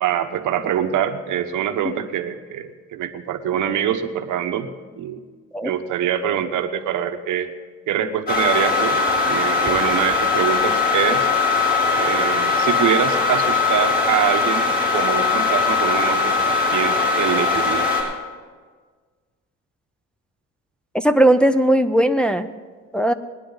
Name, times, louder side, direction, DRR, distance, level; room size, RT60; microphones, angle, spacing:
voice 1, 0.0-4.7 5.0-5.2 5.6-7.5 7.9-9.0 9.2-11.3 11.9-18.0, right 9 dB, 80° right, 7 dB, 1.0 m, -24 dB
sound 1, 8.3-18.0, left 4 dB, 30° left, 5.2 m, -20 dB
voice 2, 20.9-22.5 22.9-23.1, right 1 dB, 5° left, 6 dB, 0.6 m, -17 dB
21.0 x 10.0 x 3.9 m, 1.5 s
cardioid pair, 90°, 30 cm